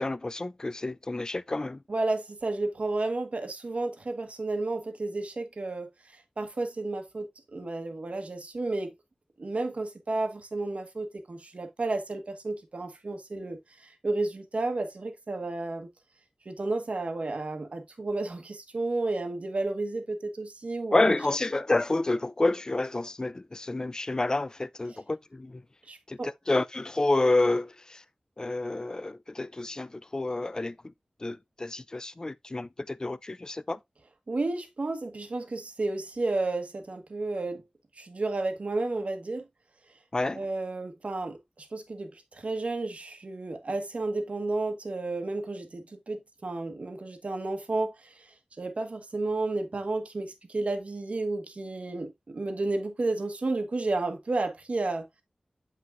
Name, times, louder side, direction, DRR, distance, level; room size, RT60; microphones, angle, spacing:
voice 1, 0.0-1.8 20.9-25.6 26.1-28.0 28.4-30.8 31.2-33.8 40.1-40.4, left 2 dB, 30° left, 0.3 m, -29 dB
voice 2, 1.9-5.9 6.4-7.3 7.5-8.9 9.4-15.9 16.4-21.2 24.9-25.0 25.9-26.3 34.3-37.6 38.0-39.4 40.3-48.3 48.6-55.0, right 2 dB, 60° right, 1.3 m, -32 dB
7.5 x 5.9 x 2.5 m
wide cardioid pair, 80°, 3 cm